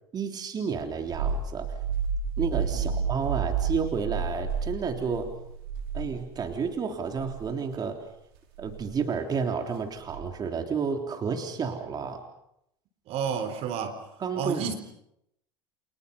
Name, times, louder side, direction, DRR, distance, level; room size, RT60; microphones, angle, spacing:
voice 1, 0.1-1.8 2.4-5.3 5.9-8.0 8.6-12.2 14.2-14.7, right 6 dB, 30° right, 4 dB, 3.6 m, -31 dB
sound 1, 0.8-6.6 7.1-7.4 8.6-8.9 10.1-10.5, right 6 dB, 75° right, 4.9 m, -31 dB
voice 2, 13.1-14.0 14.4-14.7, right 7 dB, 50° right, 10 dB, 3.9 m, -31 dB
30.0 x 27.5 x 5.5 m, 0.77 s
hypercardioid pair, 90°, 13 cm